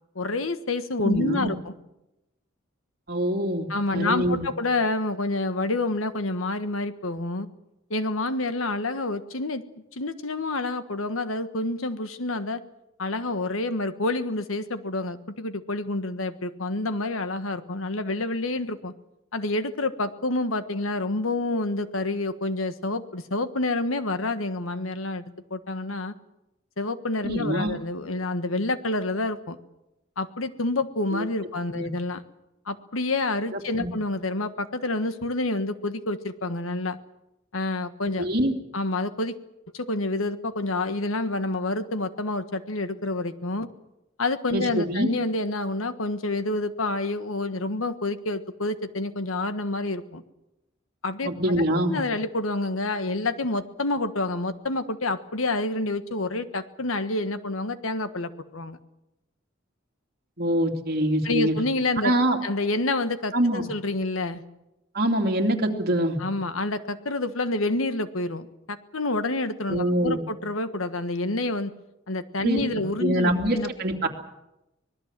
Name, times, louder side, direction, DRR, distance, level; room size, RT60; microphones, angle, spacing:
voice 1, 0.1-1.7 3.7-7.5 7.9-9.6 10.0-12.6 13.0-18.9 19.3-25.2 25.5-26.1 26.8-29.6 30.2-32.2 32.7-37.0 37.5-38.3 38.7-39.4 39.7-43.7 44.2-50.2 51.0-51.3 51.6-58.8 61.2-62.1 62.4-64.4 66.2-71.7 72.1-73.7, left 2 dB, 85° left, 10 dB, 1.5 m, -28 dB
voice 2, 1.0-1.5 3.1-3.7 3.9-4.5 27.2-27.7 31.1-31.3 31.7-31.9 33.5-33.9 38.2-38.5 44.5-45.1 51.2-52.0 60.4-61.5 62.0-62.4 63.3-63.7 64.9-66.2 69.7-70.2 72.4-72.6 73.0-74.1, right 1 dB, 50° right, 2 dB, 3.0 m, -24 dB
25.0 x 19.5 x 7.5 m, 0.91 s
head